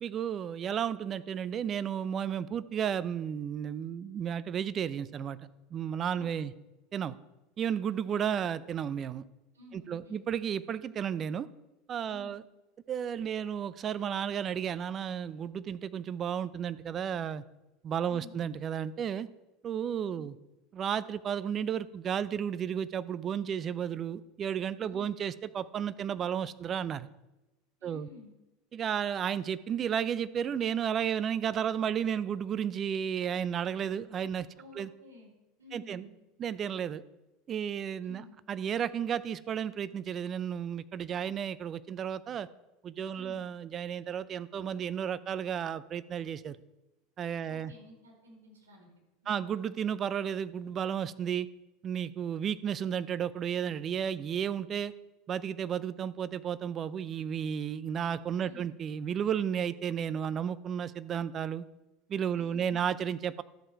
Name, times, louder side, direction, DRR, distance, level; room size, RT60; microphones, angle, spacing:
voice 1, 0.0-5.4 5.7-6.5 6.9-7.2 7.6-9.2 9.7-11.5 11.9-12.4 12.9-17.4 17.8-19.3 19.6-20.3 20.7-27.1 27.8-28.1 28.7-34.5 34.7-34.9 35.7-36.1 36.4-37.0 37.5-42.5 42.8-46.6 47.2-47.7 49.3-51.5 51.8-54.9 55.3-61.6 62.1-63.4, right 8 dB, 35° right, 16 dB, 0.6 m, -33 dB
voice 2, 6.1-6.5 9.5-10.3 12.1-12.4 18.1-18.4 20.0-20.3 24.8-25.1 27.8-28.3 34.5-35.3 35.6-36.2 38.0-38.3 43.1-43.4 47.4-48.9 49.2-49.5 58.4-58.6 62.3-62.9, left 2 dB, 80° right, -2 dB, 4.8 m, -52 dB
13.0 x 7.7 x 4.6 m, 1.0 s
hypercardioid pair, 80°, 0 cm